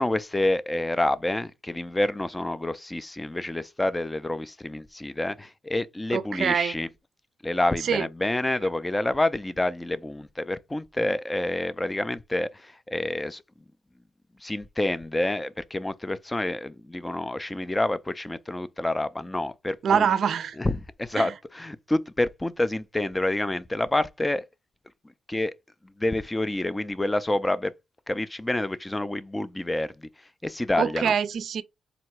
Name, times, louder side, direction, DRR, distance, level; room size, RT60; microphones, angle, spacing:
voice 1, 0.0-6.9 7.4-13.4 14.4-20.1 20.6-24.4 25.3-25.5 26.0-27.7 28.1-30.1 30.4-31.1, left 1 dB, 15° left, 0.4 m, -28 dB
voice 2, 6.1-6.7 7.8-8.1 19.8-20.6 21.2-21.3 30.8-31.6, right 7 dB, 60° right, 0.4 m, -24 dB
3.8 x 2.2 x 4.4 m
cardioid pair, 90°, 0 cm